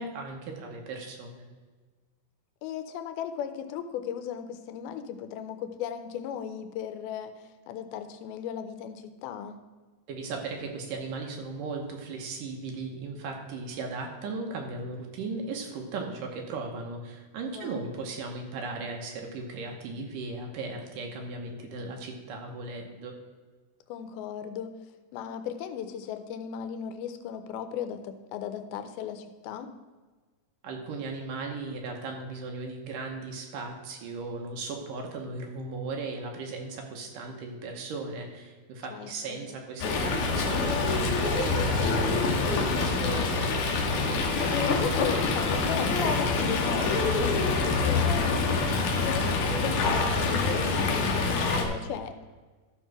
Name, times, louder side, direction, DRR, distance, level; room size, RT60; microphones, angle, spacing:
voice 1, 0.0-1.5 10.1-23.1 30.6-43.3, right 3 dB, 70° right, 2 dB, 2.5 m, -37 dB
voice 2, 2.6-9.6 17.5-17.9 23.9-24.7 25.1-29.7 38.9-39.4 44.5-52.3, left 8 dB, 85° left, 9 dB, 2.6 m, -37 dB
Fowl, 39.8-51.6, left 3 dB, 65° left, 2.2 m, -26 dB
13.0 x 4.6 x 6.1 m, 1.3 s
omnidirectional pair, 4.3 m